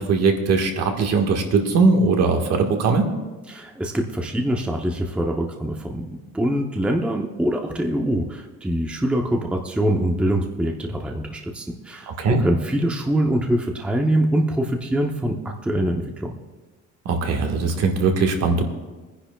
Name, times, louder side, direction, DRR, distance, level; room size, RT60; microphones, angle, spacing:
voice 1, 0.0-3.1 12.1-12.4 17.0-18.7, right 4 dB, 60° right, 3 dB, 1.5 m, -20 dB
voice 2, 3.5-12.1 12.4-16.3, right 1 dB, 5° right, 2 dB, 0.6 m, -24 dB
25.0 x 10.0 x 2.3 m, 1.2 s
cardioid pair, 155°, 30 cm